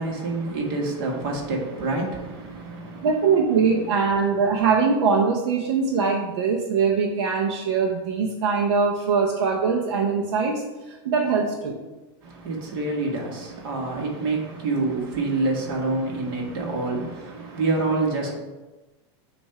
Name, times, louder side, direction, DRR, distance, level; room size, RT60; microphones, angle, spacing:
voice 1, 0.0-3.1 3.7-3.9 12.2-18.3, right 3 dB, 55° right, 1.6 m, -27 dB
voice 2, 3.0-11.8, right 5 dB, 90° right, 0.8 m, -22 dB
7.1 x 2.7 x 5.7 m
supercardioid pair, 175°, 14 cm